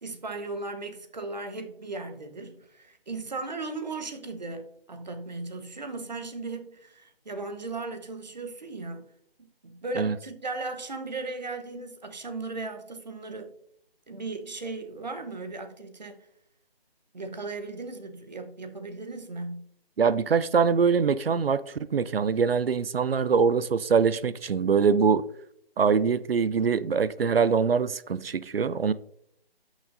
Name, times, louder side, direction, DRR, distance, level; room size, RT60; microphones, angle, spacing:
voice 1, 0.0-9.0 9.6-13.5 14.1-16.3 17.1-19.7, right 3 dB, 45° right, 1.0 m, -37 dB
voice 2, 20.0-25.3 25.8-28.9, right 6 dB, 70° right, 0.5 m, -23 dB
13.0 x 6.2 x 2.6 m
figure-of-eight pair, 175°, 30 cm